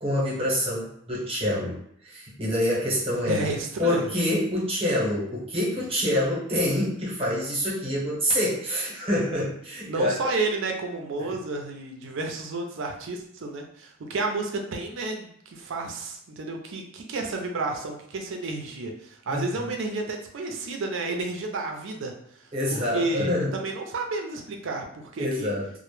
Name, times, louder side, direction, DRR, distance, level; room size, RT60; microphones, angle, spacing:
voice 1, 0.0-3.4 3.8-10.1 11.2-11.3 19.3-19.7 22.5-23.6 25.2-25.7, left 1 dB, 30° right, -5 dB, 0.8 m, -26 dB
voice 2, 3.3-4.1 9.9-22.1 22.4-22.5 22.9-25.5, right 3 dB, 65° right, 3 dB, 0.4 m, -31 dB
2.0 x 2.0 x 3.0 m, 0.69 s
head